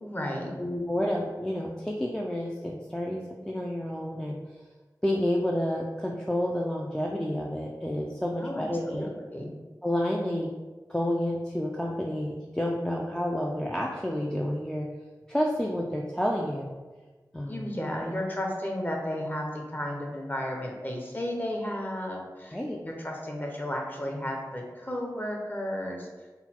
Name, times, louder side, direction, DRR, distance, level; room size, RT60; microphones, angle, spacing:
voice 1, 0.0-0.5 8.4-9.5 17.5-26.1, left 1 dB, 25° left, 0 dB, 0.8 m, -33 dB
voice 2, 0.6-4.4 5.0-9.1 9.8-10.5 10.9-14.9 15.3-16.8 17.3-17.6 22.5-22.8, left 1 dB, 10° left, -1 dB, 0.4 m, -30 dB
3.9 x 2.3 x 4.3 m, 1.3 s
wide cardioid pair, 70°, 7 cm